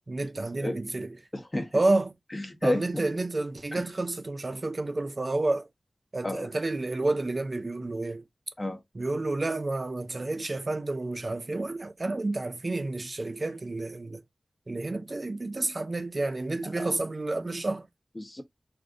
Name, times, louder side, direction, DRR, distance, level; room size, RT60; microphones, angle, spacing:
voice 1, 0.1-1.1 1.7-2.1 2.6-5.7 6.1-8.2 9.0-14.2 14.7-17.9, right 2 dB, 40° right, 0.4 m, -30 dB
voice 2, 1.3-1.8 2.3-3.0 3.7-3.9 6.2-6.5 8.6-8.8 16.6-16.9 18.2-18.4, left 1 dB, 25° left, 0.8 m, -31 dB
2.4 x 2.4 x 3.6 m
wide cardioid pair, 85°, 0 cm